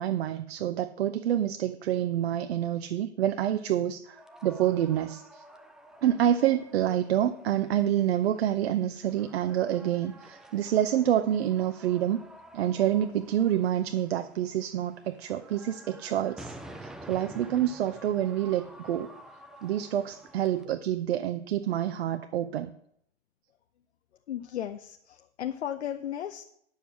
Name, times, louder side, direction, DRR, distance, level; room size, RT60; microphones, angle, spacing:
voice 1, 0.0-4.2 4.4-5.4 6.0-12.2 12.5-19.1 19.6-22.7, right 11 dB, 65° right, 9 dB, 0.7 m, -27 dB
sound 1, 4.1-20.6, right 1 dB, ahead, 0.4 m, -50 dB
voice 2, 24.3-26.4, left 10 dB, 70° left, 6 dB, 0.8 m, -35 dB
9.2 x 7.3 x 6.0 m, 0.71 s
figure-of-eight pair, 105°, 34 cm